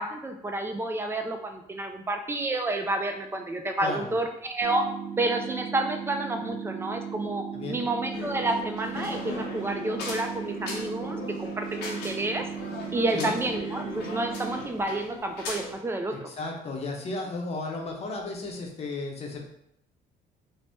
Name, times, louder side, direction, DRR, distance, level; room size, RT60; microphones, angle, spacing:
voice 1, 0.0-4.9 5.2-12.5 12.9-16.3, right 2 dB, 15° right, 5 dB, 0.3 m, -30 dB
voice 2, 3.8-4.1 7.5-7.8 13.1-13.4 16.1-19.5, left 3 dB, 40° left, 0 dB, 0.7 m, -34 dB
sound 1, 4.6-14.6, right 7 dB, 80° right, 0.8 m, -37 dB
sound 2, 8.1-15.8, left 3 dB, 85° left, 0.7 m, -39 dB
2.6 x 2.0 x 3.4 m, 0.77 s
cardioid pair, 110°, 17 cm